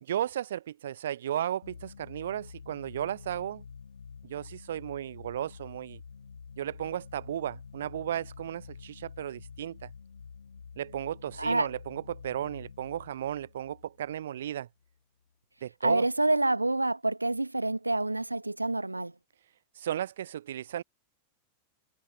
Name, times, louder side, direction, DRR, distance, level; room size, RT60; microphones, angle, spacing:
voice 1, 0.0-3.6 4.2-6.0 6.6-9.9 10.8-14.7 15.6-16.0 19.7-20.8, right 11 dB, 60° right, 0.5 m, -35 dB
sound 1, 1.6-14.9, left 6 dB, 75° left, 4.4 m, -49 dB
voice 2, 11.4-11.7 15.8-19.1, right 2 dB, 85° right, 1.0 m, -27 dB
figure-of-eight pair, 90°, 0 cm